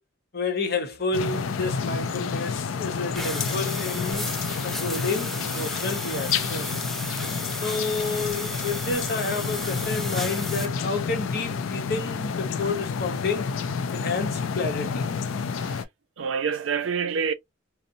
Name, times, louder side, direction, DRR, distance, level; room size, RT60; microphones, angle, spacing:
voice 1, 0.3-4.3 4.6-6.7 7.6-13.5 13.9-15.1, left 3 dB, 50° left, 0.8 m, -30 dB
sound 1, 1.1-15.9, left 5 dB, 90° left, 0.4 m, -30 dB
sound 2, 3.1-10.7, equal, ahead, 0.3 m, -34 dB
voice 2, 16.2-17.3, right 6 dB, 80° right, 0.4 m, -27 dB
2.6 x 2.0 x 2.5 m
head